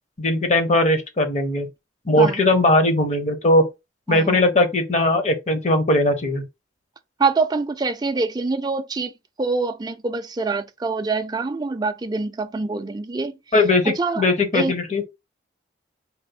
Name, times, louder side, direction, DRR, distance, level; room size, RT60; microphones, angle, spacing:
voice 1, 0.2-1.7 2.1-3.7 4.1-6.4 13.5-15.0, left 1 dB, 40° left, 0.8 m, -19 dB
voice 2, 7.2-9.1 9.4-13.4 13.9-14.2 14.5-14.7, right 4 dB, 20° right, 0.4 m, -25 dB
4.1 x 2.1 x 4.1 m
head